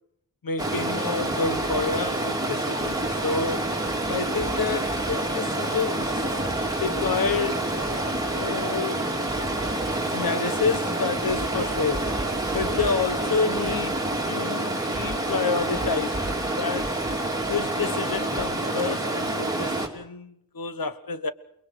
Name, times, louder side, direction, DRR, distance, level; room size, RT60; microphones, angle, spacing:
voice 1, 0.4-3.7 4.1-6.3 6.6-7.6 8.3-9.0 10.1-12.1 12.5-17.0 17.5-21.3, left 5 dB, 60° left, 1.4 m, -29 dB
Stream, 0.6-19.9, right 1 dB, 10° right, 3.0 m, -27 dB
29.0 x 21.5 x 5.0 m
wide cardioid pair, 105°, 39 cm